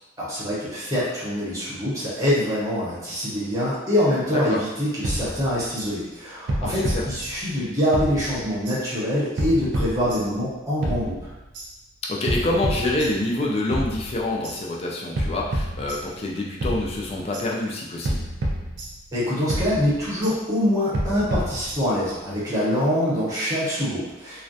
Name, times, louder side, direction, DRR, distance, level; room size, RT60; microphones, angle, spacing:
voice 1, 0.2-11.3 19.1-24.4, equal, 15° right, -9 dB, 0.8 m, -24 dB
sound 1, 5.0-5.9 6.5-7.6 7.9-8.8 9.4-10.5 10.8-11.7 12.3-13.4 13.7-14.6 15.2-16.3 16.6-17.5 18.0-19.2 19.5-20.4 20.9-22.1, right 1 dB, 60° right, 0.4 m, -29 dB
voice 2, 6.6-7.0 12.0-18.2, left 2 dB, 30° left, -3 dB, 0.3 m, -26 dB
2.3 x 2.1 x 2.6 m, 1.0 s
head